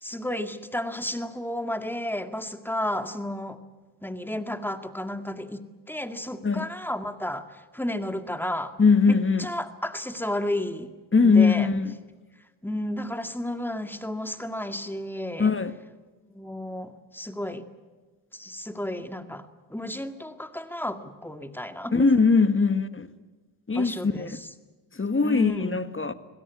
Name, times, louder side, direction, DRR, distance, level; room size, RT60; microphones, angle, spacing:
voice 1, 0.0-3.6 4.0-8.7 9.1-10.9 11.2-11.7 12.6-15.5 16.3-17.7 18.3-22.1 23.7-24.5 25.2-25.8, left 1 dB, 5° left, 2.1 m, -32 dB
voice 2, 8.8-9.5 11.1-11.9 15.4-15.7 21.9-23.1 23.7-24.3 24.9-26.1, left 4 dB, 25° left, 1.6 m, -21 dB
26.0 x 17.0 x 9.6 m
supercardioid pair, 55°, 49 cm